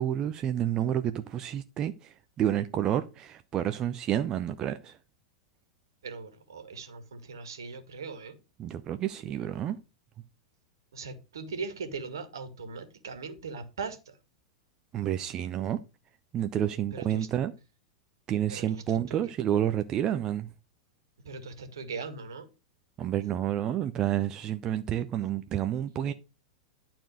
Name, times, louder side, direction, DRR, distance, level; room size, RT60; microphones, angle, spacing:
voice 1, 0.0-5.0 8.6-9.8 14.9-15.8 16.3-17.5 18.3-20.5 23.0-26.1, right 11 dB, 30° right, 0.7 m, -29 dB
voice 2, 6.0-8.4 10.9-14.2 16.9-17.3 18.5-19.2 21.3-22.5, right 4 dB, 70° right, 2.0 m, -40 dB
11.5 x 4.4 x 6.3 m
figure-of-eight pair, 90°, 2 cm